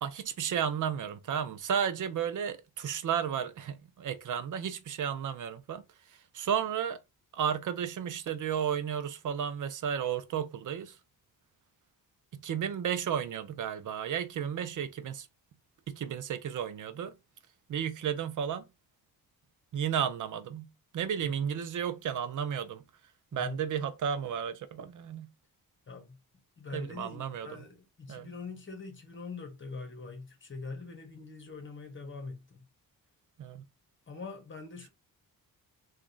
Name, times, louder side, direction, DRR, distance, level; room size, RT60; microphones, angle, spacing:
voice 1, 0.0-5.8 6.1-7.0 7.3-11.0 12.3-15.3 15.9-17.1 17.7-18.6 19.7-22.8 23.3-25.3 26.7-27.6 28.1-28.3 33.4-33.6, right 8 dB, 55° right, 0.6 m, -33 dB
voice 2, 25.9-26.2 26.6-32.7 34.1-34.9, left 4 dB, 30° left, 1.2 m, -43 dB
2.9 x 2.5 x 3.9 m
cardioid pair, 95°, 37 cm